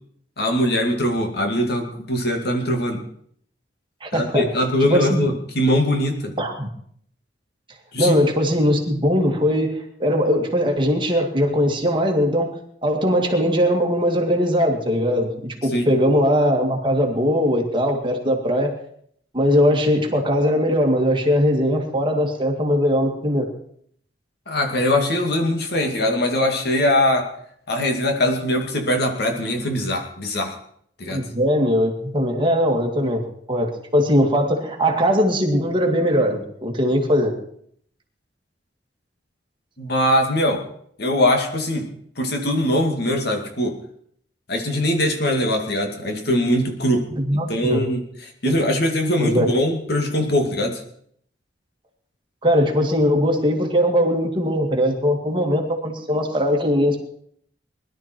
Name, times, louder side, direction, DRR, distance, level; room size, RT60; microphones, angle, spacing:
voice 1, 0.4-3.0 4.1-6.3 7.9-8.2 15.7-15.9 24.5-27.3 27.7-30.5 31.0-31.2 39.8-40.6 41.0-41.9 42.2-43.8 44.5-50.8, left 1 dB, 65° left, 3 dB, 2.4 m, -22 dB
voice 2, 4.0-4.5 4.8-5.3 6.4-6.7 8.0-12.6 12.8-18.7 19.3-23.5 31.1-33.2 33.5-37.3 47.2-47.8 48.4-48.6 49.2-49.5 52.4-57.0, equal, 30° right, 1 dB, 2.4 m, -20 dB
21.0 x 12.0 x 4.6 m, 0.65 s
head